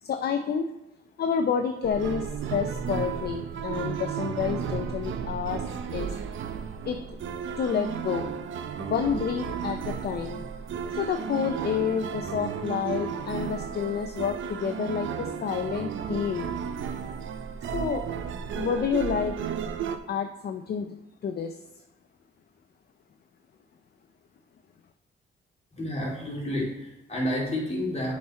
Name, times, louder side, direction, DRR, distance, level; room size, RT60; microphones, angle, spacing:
voice 1, 0.0-0.7 1.2-6.1 6.8-7.2 7.6-8.3 8.8-10.4 10.9-16.5 17.7-18.0 18.5-19.3 20.1-20.9 21.2-21.6, left 7 dB, 55° left, 6 dB, 0.5 m, -29 dB
sound 1, 1.8-20.0, right 7 dB, 75° right, 0.6 m, -33 dB
voice 2, 25.7-28.1, left 1 dB, 35° left, -4 dB, 2.7 m, -30 dB
7.3 x 4.4 x 4.3 m, 0.92 s
cardioid pair, 80°, 20 cm